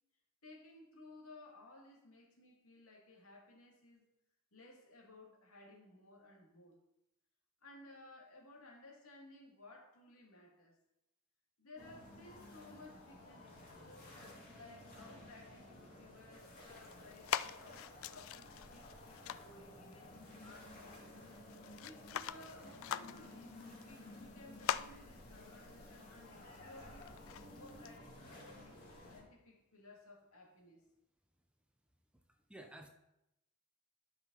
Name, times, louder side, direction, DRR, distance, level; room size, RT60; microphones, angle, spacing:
voice 1, 0.4-4.0 4.5-6.8 7.6-10.8 11.6-14.2 14.5-21.0 21.8-27.1 27.5-28.8 29.1-30.9, left 2 dB, 85° left, -1 dB, 2.2 m, -58 dB
sound 1, 11.8-29.2, left 1 dB, 45° left, 2.6 m, -55 dB
open box, 16.4-28.0, left 10 dB, 65° left, 0.3 m, -45 dB
voice 2, 32.1-32.9, right 1 dB, 5° right, 4 dB, 0.7 m, -54 dB
11.5 x 5.9 x 4.0 m, 0.88 s
head